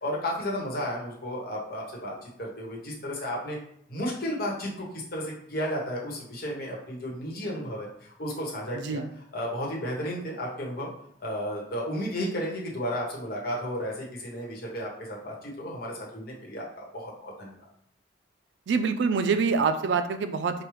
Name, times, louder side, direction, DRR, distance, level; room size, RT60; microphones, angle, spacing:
voice 1, 0.0-3.6 3.9-9.0 9.3-10.9 11.2-17.5, equal, 55° left, -2 dB, 1.1 m, -33 dB
voice 2, 8.7-9.1 18.7-20.6, right 5 dB, 80° right, 9 dB, 0.3 m, -25 dB
4.8 x 2.2 x 3.1 m, 0.70 s
head